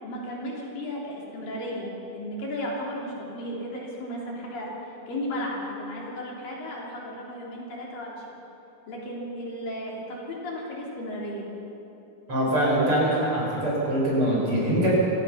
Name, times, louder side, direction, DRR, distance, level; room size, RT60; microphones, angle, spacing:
voice 1, 0.0-8.3 8.9-11.5, equal, 60° left, -4 dB, 5.0 m, -34 dB
voice 2, 12.3-14.9, right 1 dB, 35° right, -5 dB, 6.9 m, -23 dB
28.0 x 16.5 x 5.8 m, 2.9 s
omnidirectional pair, 4.5 m